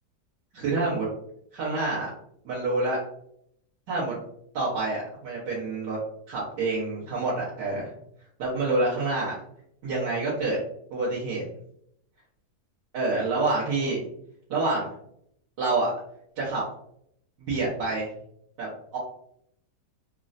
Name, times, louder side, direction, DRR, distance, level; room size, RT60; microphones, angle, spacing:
voice 1, 0.5-1.1 1.5-2.1 2.4-3.0 3.9-4.2 4.5-6.0 6.3-7.9 8.4-9.3 9.8-10.6 10.9-11.5 12.9-14.0 14.5-14.9 15.6-15.9 16.4-16.6 17.5-18.1 18.6-18.7 18.9-19.0, right 3 dB, 90° right, -9 dB, 1.6 m, -27 dB
3.7 x 2.1 x 2.4 m, 0.71 s
omnidirectional pair, 1.8 m